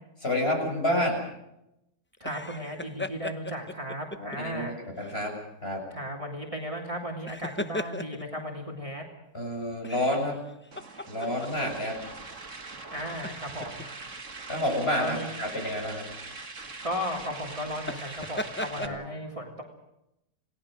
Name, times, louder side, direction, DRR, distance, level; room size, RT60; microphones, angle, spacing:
voice 1, 0.2-1.2 4.2-5.9 9.3-10.4 11.1-12.0 13.6-13.7 14.5-16.1 18.7-19.0, left 1 dB, 35° left, 2 dB, 7.1 m, -29 dB
sound 1, 2.2-4.4 5.0-5.2 7.1-8.4 9.8-11.9 12.2-12.4 13.1-13.9 15.0-15.2 17.8-18.9, left 1 dB, 15° left, 0.4 m, -37 dB
voice 2, 2.2-4.7 5.9-9.0 12.9-13.9 14.9-15.3 16.8-19.6, equal, 20° right, 1 dB, 3.0 m, -35 dB
sound 2, 10.7-18.9, right 3 dB, 50° right, 2.5 m, -42 dB
28.5 x 19.0 x 6.4 m, 0.85 s
omnidirectional pair, 1.7 m